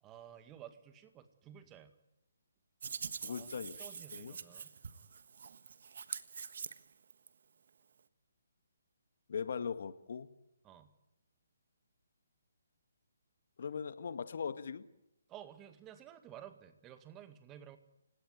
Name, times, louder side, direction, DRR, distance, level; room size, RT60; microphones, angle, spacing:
voice 1, 0.0-1.9 3.3-4.7 10.6-10.9 15.3-17.8, right 10 dB, 20° right, 9 dB, 2.1 m, -53 dB
Hands, 2.8-7.3, right 6 dB, 60° right, 1.4 m, -45 dB
voice 2, 3.2-4.4 9.3-10.3 13.6-14.8, left 6 dB, 60° left, 12 dB, 1.8 m, -40 dB
29.0 x 17.5 x 9.7 m, 0.91 s
hypercardioid pair, 150°, 0 cm